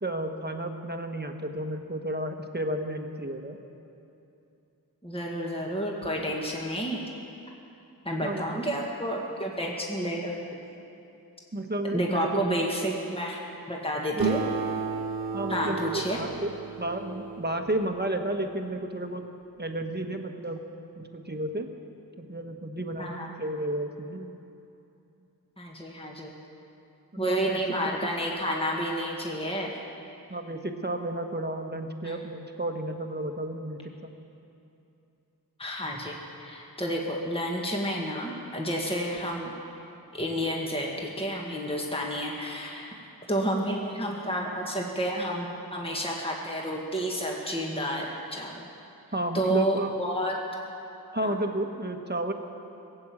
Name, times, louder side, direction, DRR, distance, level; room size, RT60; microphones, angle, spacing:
voice 1, 0.0-3.6 8.2-8.7 11.5-12.4 14.1-14.3 15.3-19.3 19.6-20.7 20.9-21.7 22.2-24.3 27.1-27.6 30.3-34.1 49.1-49.9 51.1-52.3, right 1 dB, 25° right, 5 dB, 1.2 m, -32 dB
voice 2, 5.0-7.1 8.1-10.6 11.9-13.4 13.7-14.4 15.5-16.2 23.0-23.3 25.6-26.3 27.2-29.8 32.0-32.2 35.6-39.5 40.1-42.9 43.3-48.7 49.3-50.3 51.2-51.3, equal, 15° left, -1 dB, 1.8 m, -30 dB
Acoustic guitar, 14.2-19.0, right 5 dB, 70° right, 0.9 m, -34 dB
18.0 x 7.9 x 8.6 m, 2.8 s
wide cardioid pair, 60°, 38 cm